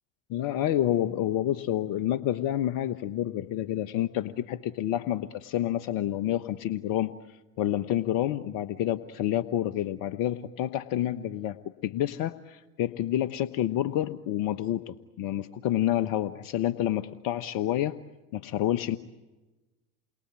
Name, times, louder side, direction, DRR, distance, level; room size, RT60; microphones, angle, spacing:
voice 1, 0.3-11.6 11.8-18.0 18.3-19.0, left 12 dB, 55° left, 11 dB, 1.2 m, -29 dB
29.0 x 23.0 x 8.9 m, 1.1 s
hypercardioid pair, 75°, 42 cm